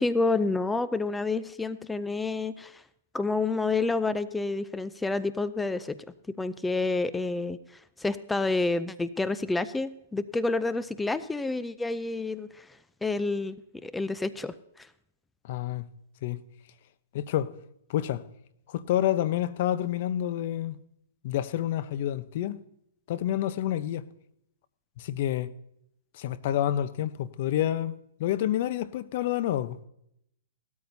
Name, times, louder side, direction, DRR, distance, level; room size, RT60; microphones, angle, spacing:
voice 1, 0.0-2.8 3.1-6.0 6.4-7.6 8.0-12.7 13.0-14.9, left 3 dB, 5° left, 0.4 m, -29 dB
voice 2, 15.4-15.9 16.2-16.4 17.1-17.5 17.9-18.2 18.7-20.8 21.2-22.6 23.1-24.0 25.0-25.5 26.1-29.8, left 12 dB, 50° left, 0.8 m, -28 dB
17.5 x 13.0 x 2.7 m
hypercardioid pair, 145°, 0 cm